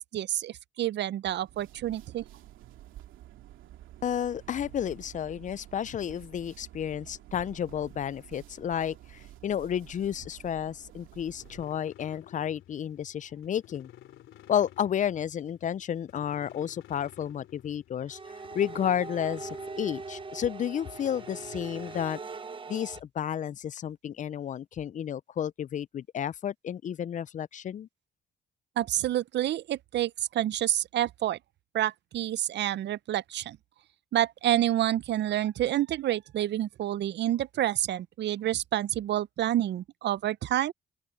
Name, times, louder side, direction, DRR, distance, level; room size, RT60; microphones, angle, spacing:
voice 1, 0.0-2.2 28.8-31.4 31.7-33.6 34.1-40.7, right 12 dB, 60° right, 0.5 m, -28 dB
sound 1, 1.3-11.9, right 13 dB, 90° right, 2.3 m, -50 dB
voice 2, 4.0-13.9 14.5-18.2 18.5-19.5 19.8-22.2 22.7-27.9, left 9 dB, 40° left, 0.4 m, -31 dB
sound 2, 11.4-22.1, left 13 dB, 80° left, 3.3 m, -53 dB
sound 3, 18.1-23.0, right 4 dB, 25° right, 0.7 m, -41 dB
open air
cardioid pair, 90°, 20 cm